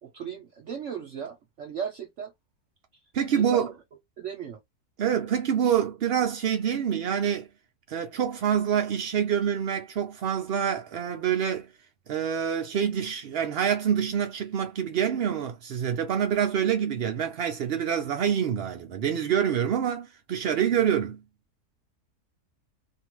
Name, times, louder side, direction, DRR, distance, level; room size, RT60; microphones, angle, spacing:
voice 1, 0.0-2.3 3.3-3.7 4.2-4.6, right 7 dB, 60° right, 0.9 m, -36 dB
voice 2, 3.1-3.7 5.0-7.5 7.9-11.7 12.1-21.2, right 8 dB, 85° right, 0.5 m, -26 dB
2.5 x 2.5 x 2.9 m
omnidirectional pair, 1.7 m